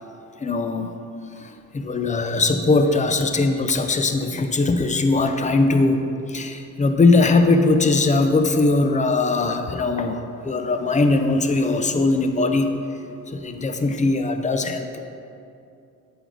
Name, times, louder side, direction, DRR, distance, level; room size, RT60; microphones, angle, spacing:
voice 1, 0.4-0.9 1.4-12.8 13.3-15.0, left 3 dB, 25° left, 7 dB, 0.6 m, -20 dB
8.2 x 5.2 x 3.8 m, 2.6 s
cardioid pair, 90°, 30 cm